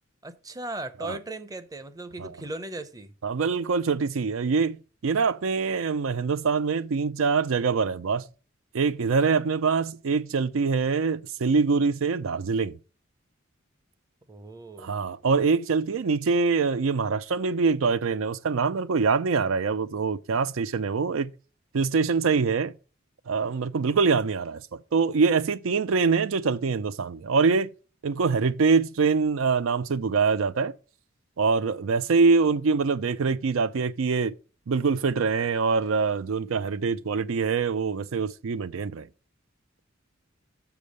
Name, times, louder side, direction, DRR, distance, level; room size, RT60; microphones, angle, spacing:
voice 1, 0.2-3.1 14.3-14.9, right 2 dB, 20° right, 0.6 m, -37 dB
voice 2, 3.2-4.8 5.0-8.2 8.7-12.7 14.8-21.3 21.7-22.7 23.3-24.6 24.9-27.7 28.0-30.7 31.4-34.3 34.7-39.1, right 5 dB, 90° right, 0.5 m, -24 dB
6.9 x 5.3 x 6.4 m
head